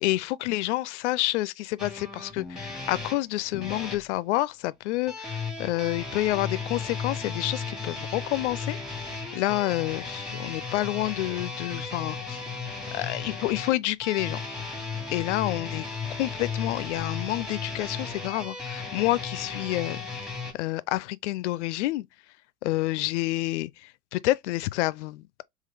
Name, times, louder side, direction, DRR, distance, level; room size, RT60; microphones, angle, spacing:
voice 1, 0.0-8.8 9.3-12.4 12.9-14.4 15.1-15.9 16.2-22.1 22.6-25.3, left 17 dB, 65° left, 0.5 m, -28 dB
sound 1, 1.8-4.0 5.1-20.5, left 4 dB, ahead, 1.3 m, -35 dB
3.7 x 3.1 x 3.4 m
hypercardioid pair, 85°, 39 cm